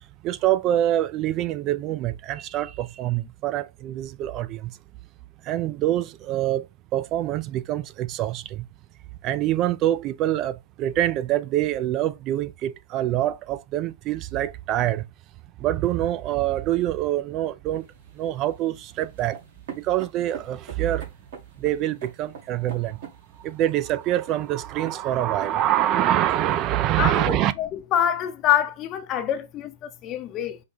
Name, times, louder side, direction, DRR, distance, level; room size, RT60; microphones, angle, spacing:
voice 1, 0.2-4.7 5.5-6.7 6.9-8.6 9.2-15.0 15.6-17.8 18.2-19.4 19.8-21.1 21.6-23.0 23.4-27.5, right 13 dB, 35° right, 0.3 m, -25 dB
sound 1, 17.7-27.5, right 6 dB, 65° right, 2.2 m, -45 dB
voice 2, 27.0-30.6, left 10 dB, 35° left, 0.6 m, -26 dB
5.2 x 2.2 x 3.7 m
hypercardioid pair, 115°, 0 cm